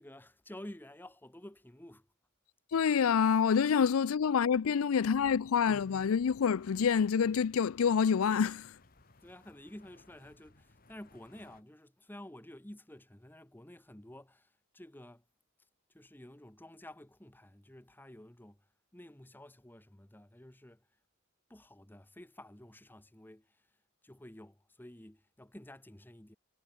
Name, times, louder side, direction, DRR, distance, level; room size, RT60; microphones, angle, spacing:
voice 1, 0.0-2.1 9.2-15.2 15.9-18.7 18.9-20.9 21.5-23.7 24.0-26.4, left 1 dB, 10° left, 1.1 m, -51 dB
voice 2, 2.7-8.7, left 6 dB, 80° left, 0.4 m, -27 dB
sound 1, 5.6-11.6, left 2 dB, 45° left, 2.4 m, -63 dB
head